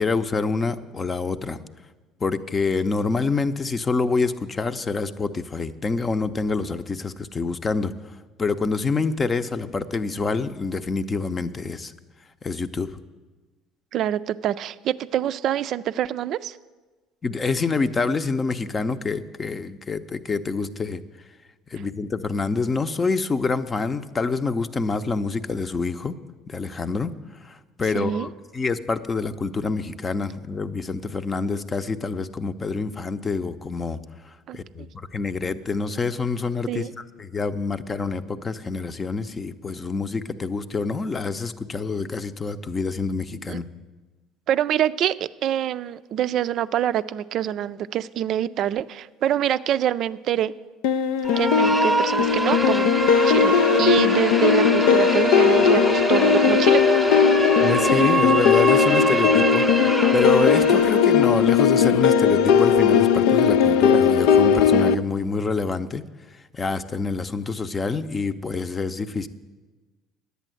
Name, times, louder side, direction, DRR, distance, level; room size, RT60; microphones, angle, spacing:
voice 1, 0.0-1.6 2.2-7.9 8.4-11.9 12.4-13.0 17.2-21.0 21.7-26.2 26.5-27.1 27.4-34.0 34.5-43.7 57.6-59.7 60.1-66.0 66.5-69.3, left 4 dB, 30° left, 11 dB, 0.7 m, -26 dB
voice 2, 13.9-16.6 27.9-28.3 34.5-34.6 36.7-36.9 43.5-43.6 44.5-50.5 51.4-52.9 53.2-56.8, right 11 dB, 60° right, 14 dB, 0.3 m, -25 dB
sound 1, 50.8-64.9, left 7 dB, 75° left, 0.4 m, -18 dB
sound 2, 51.2-61.1, right 3 dB, 10° right, 0.9 m, -25 dB
10.5 x 8.2 x 7.7 m, 1.3 s
hypercardioid pair, 65°, 0 cm